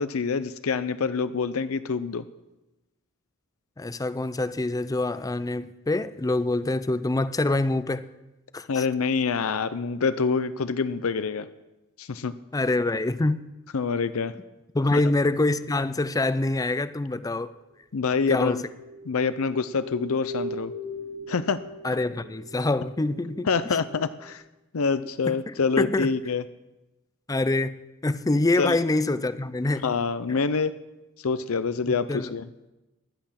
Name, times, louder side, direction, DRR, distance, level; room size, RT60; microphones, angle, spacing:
voice 1, 0.0-2.3 8.7-11.5 12.0-12.3 13.7-14.3 14.9-15.0 17.9-18.6 19.1-20.7 21.3-21.6 23.5-24.4 24.7-26.4 28.6-28.8 29.8-30.7 31.2-32.5, left 5 dB, 70° left, 0.6 m, -26 dB
voice 2, 3.8-8.1 8.5-8.9 12.5-13.5 14.7-17.5 18.3-18.6 21.8-23.8 25.3-26.1 27.3-29.9 30.3-30.4 31.8-32.3, left 2 dB, 15° left, 0.5 m, -26 dB
sound 1, 18.7-24.3, left 1 dB, 90° right, 2.9 m, -40 dB
16.0 x 11.0 x 5.8 m
head